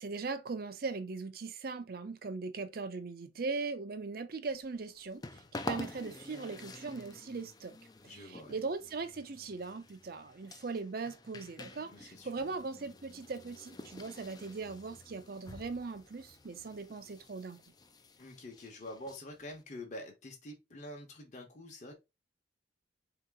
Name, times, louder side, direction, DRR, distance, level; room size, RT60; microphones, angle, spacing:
voice 1, 0.0-7.8 8.0-17.6, right 4 dB, 55° right, 0.5 m, -40 dB
sound 1, 4.5-19.6, left 2 dB, 20° left, 0.4 m, -49 dB
voice 2, 8.1-8.6 11.9-12.5 18.2-21.9, left 1 dB, 40° left, 1.0 m, -47 dB
3.8 x 2.9 x 3.5 m
head